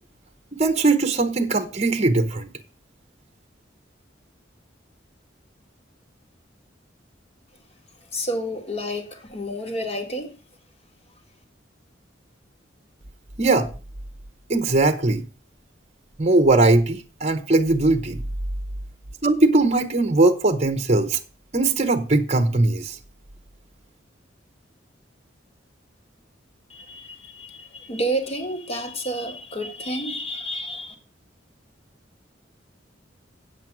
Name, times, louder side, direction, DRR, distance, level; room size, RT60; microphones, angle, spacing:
voice 1, 0.6-2.4 13.4-13.7 14.5-15.2 16.2-18.2 19.2-21.2 21.5-23.0, right 2 dB, 35° right, 0.9 m, -20 dB
voice 2, 8.1-10.3 26.7-30.9, equal, 35° left, 1.9 m, -30 dB
8.4 x 7.6 x 6.0 m
head